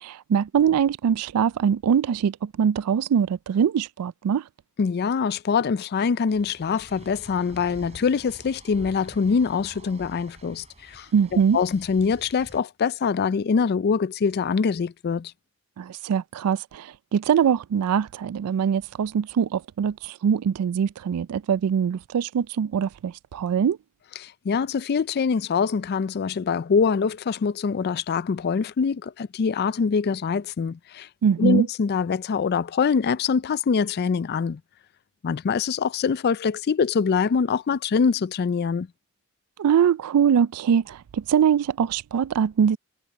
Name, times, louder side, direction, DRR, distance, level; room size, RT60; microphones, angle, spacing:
voice 1, 0.0-4.4 11.1-11.6 15.8-23.8 31.2-31.7 39.6-42.8, right 7 dB, 85° right, 0.3 m, -23 dB
voice 2, 4.8-15.3 24.2-31.1 31.4-34.6 35.2-38.9, left 5 dB, 45° left, 0.4 m, -24 dB
sound 1, 6.3-12.6, right 1 dB, 30° right, 5.7 m, -47 dB
head